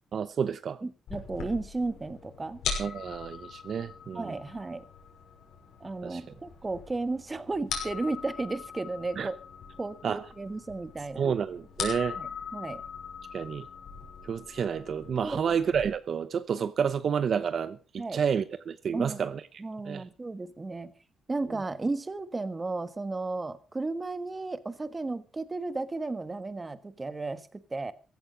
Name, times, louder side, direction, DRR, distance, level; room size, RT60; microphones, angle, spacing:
voice 1, 0.1-0.8 2.8-4.4 6.0-6.2 9.2-9.3 10.0-10.2 11.2-12.2 13.3-13.6 14.2-19.4 19.9-20.0, right 7 dB, 55° right, 0.8 m, -30 dB
voice 2, 0.8-2.6 4.1-4.8 5.8-9.4 9.8-11.3 12.2-12.8 15.2-15.5 18.0-18.2 18.9-19.3 19.6-20.9 21.3-27.9, right 3 dB, 20° right, 1.3 m, -34 dB
sound 1, 1.1-15.8, left 6 dB, 85° left, 6.1 m, -41 dB
15.5 x 13.5 x 5.0 m
cardioid pair, 120°, 0 cm